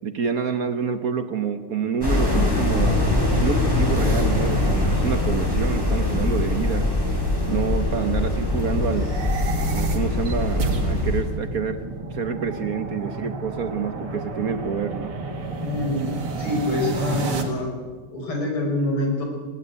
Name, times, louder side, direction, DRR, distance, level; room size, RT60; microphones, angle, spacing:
voice 1, 0.0-6.9 7.5-9.1 9.7-15.1, right 6 dB, 50° right, 9 dB, 1.2 m, -27 dB
sound 1, 2.0-11.2, left 2 dB, 10° left, 4.7 m, -22 dB
sound 2, 8.9-17.4, right 2 dB, 75° right, 3.0 m, -30 dB
voice 2, 15.6-16.1 16.4-17.7 18.1-19.2, left 1 dB, 80° left, 1 dB, 5.8 m, -25 dB
20.5 x 15.5 x 9.5 m, 1.5 s
omnidirectional pair, 2.4 m